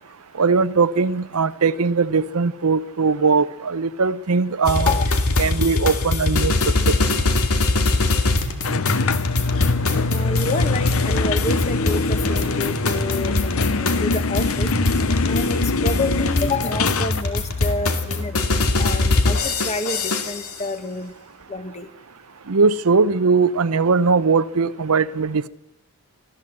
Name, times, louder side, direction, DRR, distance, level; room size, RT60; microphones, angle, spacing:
voice 1, 0.3-5.0 5.4-7.2 22.5-25.5, right 4 dB, 85° right, 0.7 m, -20 dB
sound 1, 4.6-20.6, left 2 dB, 85° left, 2.3 m, -22 dB
sound 2, 8.6-17.2, left 3 dB, 70° left, 0.7 m, -24 dB
voice 2, 10.1-14.7 15.3-18.4 18.7-21.1 21.5-21.9, left 2 dB, 30° left, 1.5 m, -28 dB
23.5 x 14.5 x 7.8 m
head